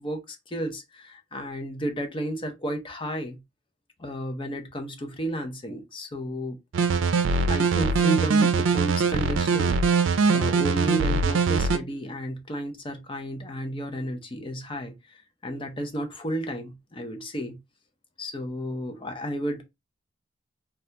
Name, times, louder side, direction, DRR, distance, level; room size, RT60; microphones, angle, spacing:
voice 1, 0.0-3.4 4.0-6.6 7.3-9.8 10.3-17.6 18.2-19.6, equal, 25° left, 0.5 m, -32 dB
sound 1, 6.7-11.8, right 4 dB, 85° right, 0.4 m, -22 dB
2.7 x 2.3 x 3.2 m
head